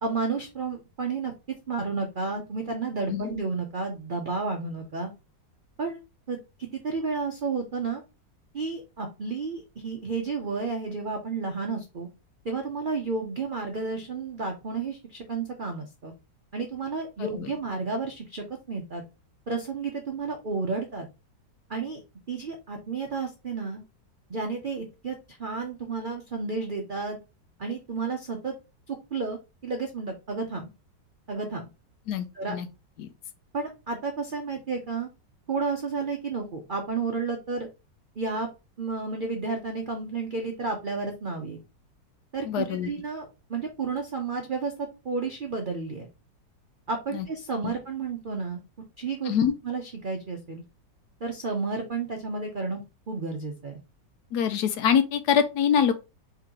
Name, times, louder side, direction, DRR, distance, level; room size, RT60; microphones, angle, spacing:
voice 1, 0.0-1.3 1.7-5.1 5.8-6.0 6.3-8.0 8.5-12.1 12.4-16.1 16.5-19.0 19.5-21.1 21.7-22.0 22.3-23.8 24.3-27.2 27.6-28.5 28.9-30.7 31.3-31.7 32.3-32.5 33.5-35.1 35.5-37.7 38.2-38.5 38.8-41.6 42.3-44.7 45.0-46.1 46.9-48.6 49.0-49.4 49.6-50.6 51.2-52.8 53.1-53.8, right 4 dB, 85° right, 0.4 m, -31 dB
voice 2, 17.2-17.5 32.1-32.7 33.0-33.1 42.4-42.9 47.1-47.3 47.6-47.7 49.2-49.5 54.3-55.9, left 8 dB, 70° left, 1.1 m, -25 dB
4.5 x 3.8 x 2.9 m
omnidirectional pair, 1.9 m